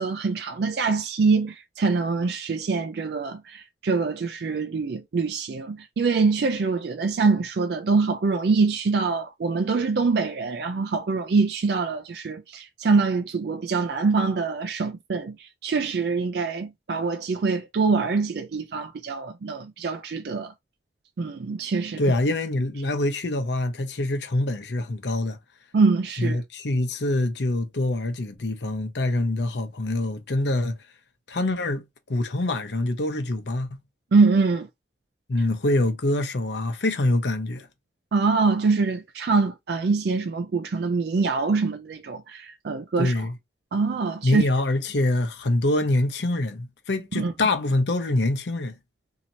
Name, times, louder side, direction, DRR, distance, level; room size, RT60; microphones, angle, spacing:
voice 1, 0.0-20.5 21.2-22.0 25.7-26.4 34.1-34.7 38.1-43.1 43.7-44.4 47.2-47.3, right 4 dB, 65° right, 0.4 m, -24 dB
voice 2, 22.0-25.4 26.2-30.8 31.3-33.8 35.3-37.7 43.0-43.4 44.2-48.8, left 2 dB, 75° left, 0.7 m, -25 dB
2.8 x 2.7 x 2.8 m
head